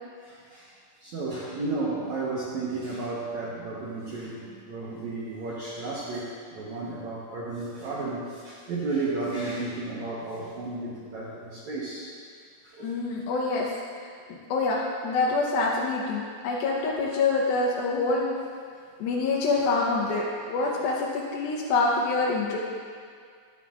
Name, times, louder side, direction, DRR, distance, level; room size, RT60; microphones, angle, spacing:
voice 1, 0.2-0.6 1.0-12.1 12.6-12.9, right 3 dB, 85° right, -6 dB, 1.6 m, -33 dB
voice 2, 12.8-13.7 14.3-18.3 19.0-22.6, left 3 dB, 75° left, -3 dB, 2.4 m, -26 dB
15.0 x 12.0 x 2.5 m, 2.1 s
omnidirectional pair, 5.1 m